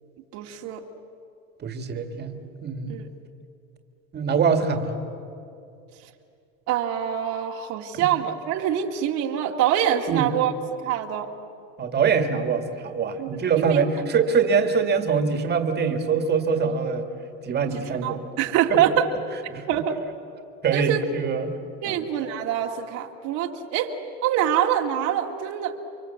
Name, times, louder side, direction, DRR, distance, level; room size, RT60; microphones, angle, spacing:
voice 1, 0.3-0.8 2.9-3.1 6.7-10.5 10.8-11.3 13.2-13.8 17.7-19.1 19.7-20.0 20.7-21.0 21.8-23.9 24.2-25.8, right 10 dB, 70° right, 2 dB, 2.1 m, -25 dB
voice 2, 1.6-3.0 4.1-5.0 7.9-8.1 10.1-10.3 11.8-17.1 17.4-18.2 18.7-18.8 19.5-19.6 20.6-21.6 21.8-22.0, right 6 dB, 35° right, 6 dB, 2.1 m, -24 dB
29.5 x 23.5 x 8.3 m, 2.6 s
cardioid pair, 125°, 30 cm